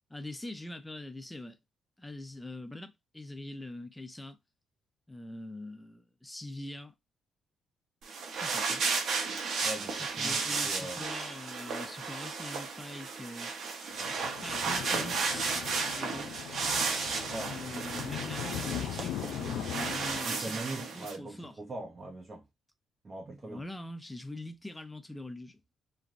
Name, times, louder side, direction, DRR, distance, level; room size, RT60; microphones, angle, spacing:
voice 1, 0.1-1.6 2.0-4.4 5.1-6.9 8.3-8.8 9.9-14.1 14.4-15.6 15.9-16.3 17.4-20.6 20.9-21.5 23.4-25.7, left 1 dB, 10° left, 0.6 m, -43 dB
sound 1, 8.0-21.2, right 4 dB, 70° right, 0.8 m, -34 dB
voice 2, 9.6-11.1 17.3-17.5 20.2-22.4 23.0-23.6, right 2 dB, 35° right, 0.7 m, -41 dB
sound 2, 13.9-20.3, left 11 dB, 90° left, 0.3 m, -39 dB
3.2 x 2.3 x 2.5 m
cardioid pair, 90°, 0 cm